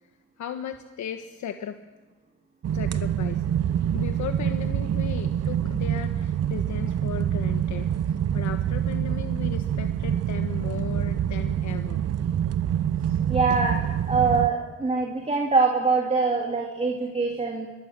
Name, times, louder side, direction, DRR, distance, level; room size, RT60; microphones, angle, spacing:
voice 1, 0.4-1.8 2.7-3.6 3.9-7.9 8.3-12.1 13.0-13.2 13.5-13.6, left 8 dB, 70° left, 7 dB, 1.4 m, -36 dB
sound 1, 2.6-14.5, right 9 dB, 55° right, 1.1 m, -26 dB
voice 2, 13.3-13.8 14.1-17.7, right 4 dB, 20° right, 0 dB, 3.3 m, -23 dB
26.5 x 22.0 x 7.6 m, 1.3 s
cardioid pair, 90°, 30 cm